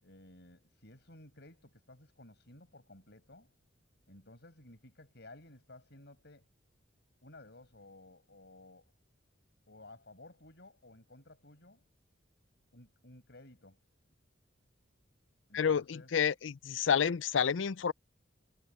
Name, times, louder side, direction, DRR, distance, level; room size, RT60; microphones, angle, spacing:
voice 1, 0.0-3.5 4.1-6.5 7.2-8.9 9.7-11.8 12.7-13.8 15.5-16.1, left 2 dB, 65° left, 7.1 m, -56 dB
voice 2, 15.5-17.9, left 7 dB, 85° left, 0.5 m, -29 dB
head